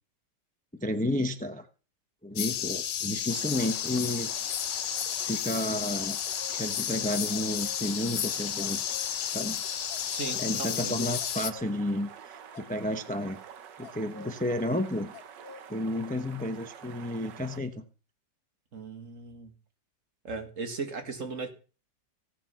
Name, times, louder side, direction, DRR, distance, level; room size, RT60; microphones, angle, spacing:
voice 1, 0.8-1.7 2.2-4.3 5.3-6.2 6.5-8.8 9.3-9.6 10.3-13.4 13.8-15.1 15.7-17.8, left 1 dB, 10° left, 0.5 m, -31 dB
sound 1, 2.4-11.5, left 10 dB, 80° left, 1.6 m, -32 dB
sound 2, 3.3-17.6, right 8 dB, 75° right, 1.6 m, -48 dB
sound 3, 6.0-7.9 8.2-8.3 8.6-16.5, left 5 dB, 60° left, 1.3 m, -51 dB
voice 2, 10.1-11.1 18.7-19.5 20.2-21.5, right 4 dB, 45° right, 2.2 m, -37 dB
16.0 x 9.1 x 5.7 m
omnidirectional pair, 1.9 m